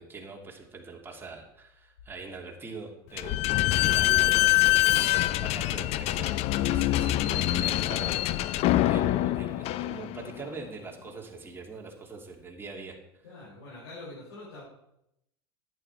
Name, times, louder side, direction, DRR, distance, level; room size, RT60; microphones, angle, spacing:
voice 1, 0.0-6.3 6.6-8.2 8.5-13.0, right 4 dB, 15° right, 0 dB, 2.7 m, -43 dB
Slam / Squeak, 3.2-10.4, left 16 dB, 50° left, 0.6 m, -25 dB
voice 2, 13.2-14.6, left 2 dB, 75° left, -7 dB, 5.5 m, -45 dB
11.0 x 9.3 x 4.7 m, 0.82 s
hypercardioid pair, 80°, 13 cm